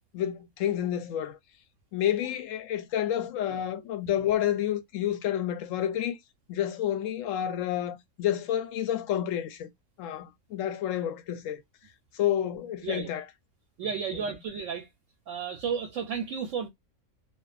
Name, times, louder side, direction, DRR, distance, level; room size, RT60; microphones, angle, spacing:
voice 1, 0.1-1.4 1.9-6.2 6.5-9.7 10.0-11.6 12.1-13.2 14.1-14.2, left 11 dB, 70° left, 0.9 m, -29 dB
voice 2, 13.8-14.9 15.3-16.7, right 6 dB, 70° right, 0.8 m, -33 dB
2.4 x 2.2 x 2.3 m
omnidirectional pair, 1.5 m